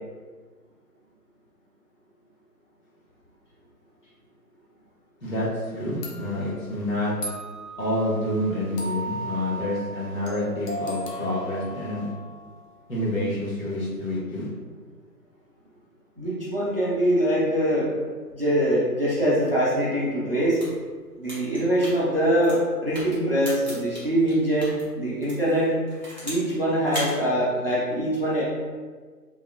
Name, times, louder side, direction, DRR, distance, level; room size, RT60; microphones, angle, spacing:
voice 1, 5.2-7.1 7.8-12.1 12.9-14.5, left 1 dB, 55° left, -7 dB, 1.1 m, -28 dB
sound 1, 5.5-5.6 6.0-12.8, right 1 dB, 70° left, 0.7 m, -37 dB
voice 2, 16.2-17.9 18.3-20.6 21.2-25.7 26.2-28.4, right 1 dB, 40° right, -7 dB, 0.4 m, -23 dB
sound 2, 20.4-24.8 25.2-26.5 26.8-27.1, equal, 30° left, 0.6 m, -37 dB
2.8 x 2.3 x 2.3 m, 1.5 s
figure-of-eight pair, 145°, 49 cm